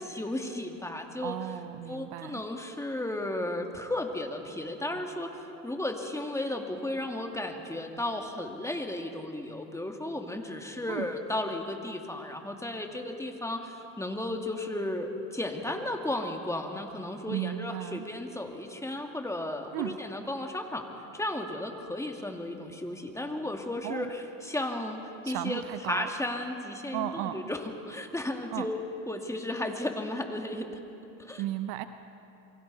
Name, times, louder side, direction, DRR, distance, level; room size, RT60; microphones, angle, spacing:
voice 1, 0.0-1.4 1.9-20.9 21.1-24.1 24.4-25.6 25.9-30.7 31.2-31.4, left 1 dB, 5° left, 3 dB, 2.3 m, -34 dB
voice 2, 1.2-2.4 10.9-11.1 17.3-18.1 19.7-20.0 23.8-24.1 25.2-26.1 26.9-27.4 28.5-28.7 31.4-31.8, right 14 dB, 55° right, 11 dB, 0.9 m, -35 dB
28.5 x 23.5 x 4.2 m, 2.9 s
hypercardioid pair, 80°, 44 cm